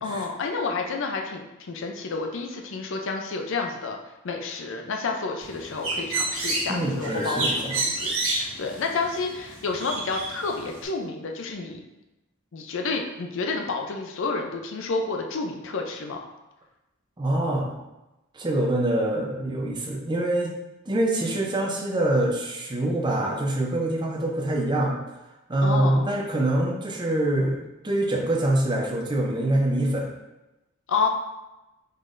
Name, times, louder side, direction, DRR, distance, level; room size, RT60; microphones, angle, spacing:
voice 1, 0.0-4.0 4.2-11.8 12.5-16.2 25.6-26.1 30.9-31.1, left 4 dB, 60° left, 3 dB, 0.5 m, -30 dB
Bird, 5.4-10.8, right 2 dB, 70° right, 1.4 m, -30 dB
voice 2, 6.7-7.7 17.2-17.7 18.3-20.6 20.9-25.2 25.5-30.1, right 1 dB, 20° right, -1 dB, 0.6 m, -25 dB
5.2 x 3.8 x 2.6 m, 0.99 s
head